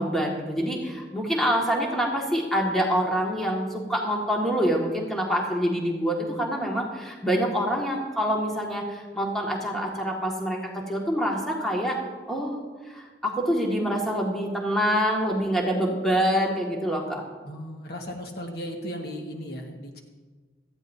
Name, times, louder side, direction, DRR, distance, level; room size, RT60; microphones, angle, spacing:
voice 1, 0.0-12.0 12.3-17.2, equal, ahead, -2 dB, 1.8 m, -26 dB
voice 2, 17.5-20.0, equal, 55° left, 2 dB, 1.5 m, -36 dB
18.0 x 13.5 x 2.7 m, 1.3 s
head